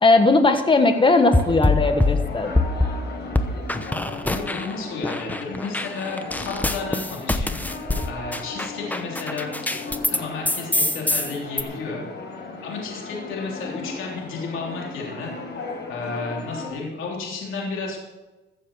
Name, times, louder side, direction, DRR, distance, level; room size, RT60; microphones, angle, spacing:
voice 1, 0.0-2.5, left 3 dB, 25° left, 7 dB, 1.5 m, -18 dB
sound 1, 0.6-16.7, left 3 dB, 65° left, 4.5 m, -37 dB
sound 2, 1.3-3.0 3.4-4.8 5.0-10.2 10.5-11.6, left 2 dB, 10° left, 0.9 m, -24 dB
voice 2, 4.3-7.6 8.0-9.8 10.1-12.0 12.4-15.3 15.9-18.0, left 4 dB, 85° left, -2 dB, 3.3 m, -32 dB
14.5 x 7.4 x 6.3 m, 1.1 s
cardioid pair, 90°, 20 cm